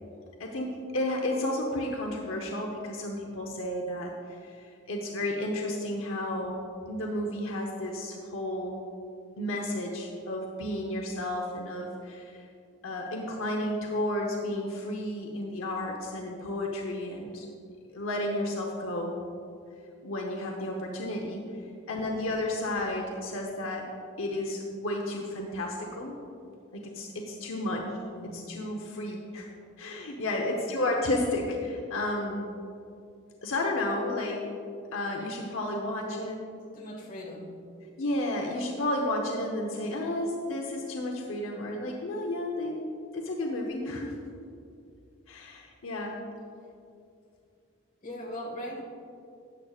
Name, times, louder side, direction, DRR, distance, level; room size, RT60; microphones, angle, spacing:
voice 1, 0.4-4.1 4.4-6.6 6.9-8.8 9.4-12.4 12.8-17.5 17.9-19.2 20.0-21.4 21.9-23.9 24.2-26.2 26.7-27.8 28.3-29.5 29.8-31.4 31.9-32.4 33.4-34.5 34.9-36.4 38.0-42.8 43.1-44.1 45.3-46.2, left 1 dB, 75° left, 0 dB, 0.9 m, -32 dB
voice 2, 28.1-28.4 31.0-31.3 36.7-37.5 44.0-44.1 48.0-48.8, equal, 40° left, -2 dB, 1.6 m, -40 dB
13.0 x 8.9 x 2.4 m, 2.5 s
head